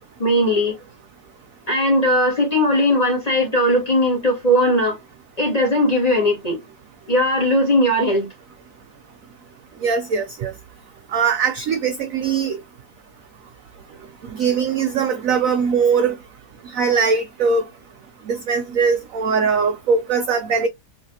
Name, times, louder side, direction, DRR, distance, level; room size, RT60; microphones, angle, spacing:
voice 1, 0.2-0.8 1.7-5.0 5.4-6.6 7.1-8.3, equal, 25° left, 1.2 m, -18 dB
voice 2, 9.8-10.5 11.1-12.6 14.3-16.1 16.7-17.6 18.3-20.7, right 5 dB, 80° right, 0.7 m, -20 dB
3.2 x 3.0 x 2.7 m
omnidirectional pair, 2.0 m